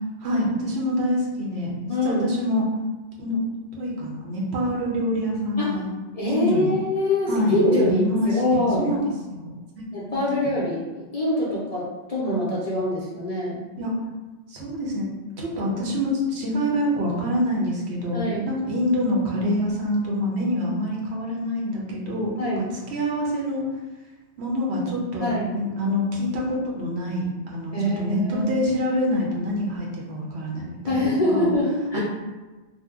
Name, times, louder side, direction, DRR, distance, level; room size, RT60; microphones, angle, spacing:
voice 1, 0.2-2.7 3.2-3.4 3.7-5.8 6.3-6.7 7.3-9.5 9.8-9.9 13.8-13.9 14.5-15.1 15.4-22.6 22.9-23.6 24.4-31.4 31.9-32.0, equal, 70° right, -3 dB, 0.9 m, -26 dB
voice 2, 1.9-2.3 5.6-5.8 6.1-8.9 9.9-13.6 18.1-18.5 22.4-22.7 25.2-25.5 27.7-28.6 30.9-32.0, left 1 dB, 40° left, -7 dB, 0.6 m, -24 dB
2.7 x 2.2 x 3.5 m, 1.2 s
omnidirectional pair, 1.1 m